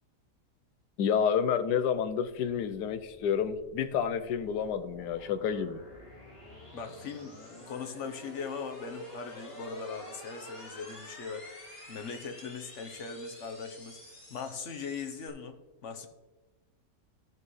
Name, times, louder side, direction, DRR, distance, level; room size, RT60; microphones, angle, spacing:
voice 1, 1.0-5.8, left 7 dB, 80° left, 11 dB, 1.2 m, -29 dB
sound 1, 2.6-15.3, left 1 dB, 35° left, 2.8 m, -50 dB
voice 2, 6.7-16.1, left 5 dB, 55° left, 6 dB, 1.0 m, -40 dB
14.0 x 6.1 x 3.1 m, 1.2 s
omnidirectional pair, 1.8 m